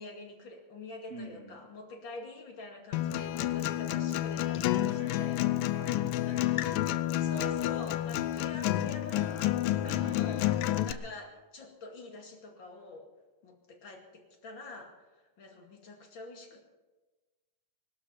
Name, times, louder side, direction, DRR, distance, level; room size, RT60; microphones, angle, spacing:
voice 1, 0.0-5.4 6.3-13.1 13.4-16.6, left 2 dB, 35° left, 2 dB, 2.6 m, -47 dB
voice 2, 1.1-1.7 4.9-6.5 9.8-10.9, right 1 dB, 55° right, 1 dB, 0.7 m, -47 dB
Acoustic guitar, 2.9-10.9, left 13 dB, 80° left, 2.1 m, -30 dB
20.5 x 12.5 x 5.7 m, 1.2 s
omnidirectional pair, 4.3 m